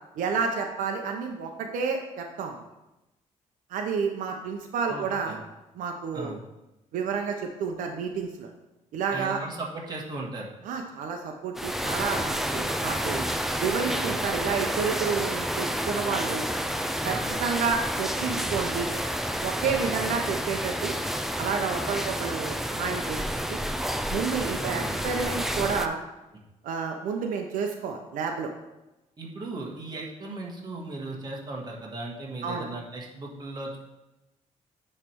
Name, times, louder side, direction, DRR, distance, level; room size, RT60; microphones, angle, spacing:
voice 1, 0.2-2.6 3.7-5.4 5.7-6.4 6.9-8.5 8.9-9.4 10.6-13.2 13.6-16.5 17.0-18.9 19.4-20.9 21.4-23.6 24.1-26.0 26.6-28.5 32.4-32.7, right 5 dB, 85° right, 3 dB, 0.7 m, -30 dB
voice 2, 4.9-5.4 6.1-6.4 9.1-10.5 17.1-17.3 19.7-20.0 24.6-25.0 29.2-33.8, right 2 dB, 30° right, -2 dB, 1.6 m, -37 dB
sound 1, 11.5-25.9, equal, ahead, 0.4 m, -30 dB
9.6 x 3.3 x 4.6 m, 0.98 s
cardioid pair, 105°, 13 cm